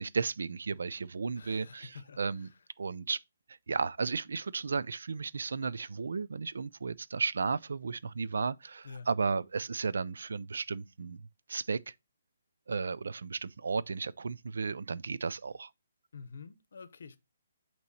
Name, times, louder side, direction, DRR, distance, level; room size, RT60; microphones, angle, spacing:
voice 1, 0.0-2.5 2.8-3.2 3.7-11.9 12.7-15.7, right 4 dB, 80° right, 0.4 m, -34 dB
voice 2, 1.4-2.5 8.8-9.1 16.1-17.2, left 5 dB, 70° left, 0.8 m, -48 dB
8.3 x 3.0 x 4.0 m
hypercardioid pair, 170°, 0 cm